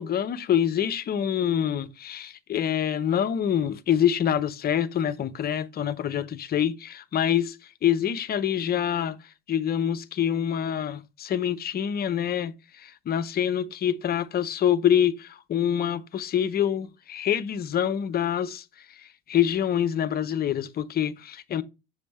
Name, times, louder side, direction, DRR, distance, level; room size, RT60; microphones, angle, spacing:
voice 1, 0.0-7.6 7.8-9.2 9.5-18.6 19.0-21.6, left 9 dB, 30° left, 0.7 m, -26 dB
6.4 x 5.2 x 3.0 m
hypercardioid pair, 70°, 30 cm